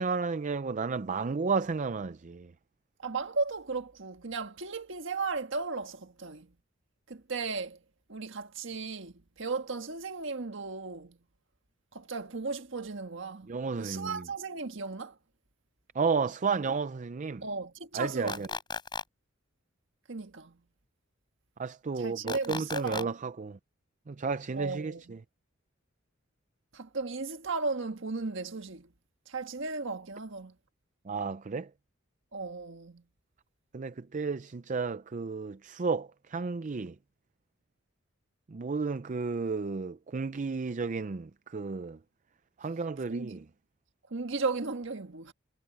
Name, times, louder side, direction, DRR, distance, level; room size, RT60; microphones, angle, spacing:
voice 1, 0.0-2.5 13.5-14.3 15.9-17.4 17.9-18.5 21.6-23.6 24.1-25.2 31.1-31.7 33.7-37.0 38.5-42.0 42.6-43.4, right 4 dB, 40° right, 0.5 m, -32 dB
voice 2, 3.0-6.5 7.1-7.8 8.1-11.2 11.9-13.5 13.8-15.1 17.4-18.4 20.1-20.6 22.0-23.1 24.5-25.1 26.7-28.9 29.3-30.5 32.3-33.0 43.1-43.4 44.1-45.3, right 4 dB, 65° right, 1.6 m, -35 dB
sound 1, 18.3-19.0 22.3-23.0, left 4 dB, 25° left, 5.1 m, -35 dB
head